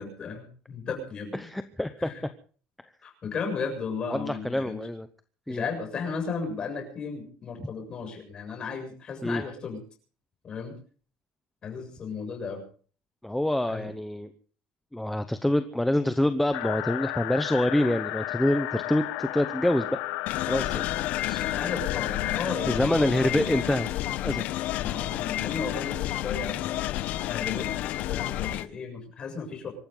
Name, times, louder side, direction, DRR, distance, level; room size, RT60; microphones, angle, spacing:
voice 1, 0.0-1.5 2.0-2.2 3.0-4.8 5.5-9.8 10.4-10.7 11.6-12.6 13.7-13.9 21.4-23.3 24.8-26.8 27.3-27.7 28.1-29.7, left 5 dB, 30° left, 3 dB, 7.4 m, -35 dB
voice 2, 1.3-2.1 4.1-5.1 5.5-5.7 9.2-9.4 13.2-14.3 14.9-20.0 20.5-20.8 21.3-21.4 22.6-23.9 24.2-24.4, left 1 dB, 5° left, 9 dB, 0.9 m, -26 dB
sound 1, 16.5-22.5, left 17 dB, 90° left, 1.5 m, -33 dB
sound 2, 20.3-28.7, left 14 dB, 55° left, 1.0 m, -30 dB
25.5 x 14.0 x 3.9 m, 0.42 s
cardioid pair, 160°, 3 cm